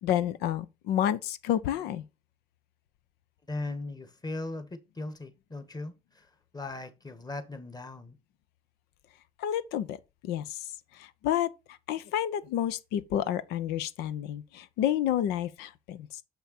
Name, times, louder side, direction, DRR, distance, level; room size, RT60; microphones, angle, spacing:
voice 1, 0.0-2.0 9.4-10.0 10.2-10.6 10.9-11.5 11.9-16.2, left 11 dB, 85° left, 0.7 m, -30 dB
voice 2, 3.5-8.2, left 2 dB, 25° left, 1.7 m, -38 dB
7.0 x 5.7 x 4.3 m
supercardioid pair, 65°, 16 cm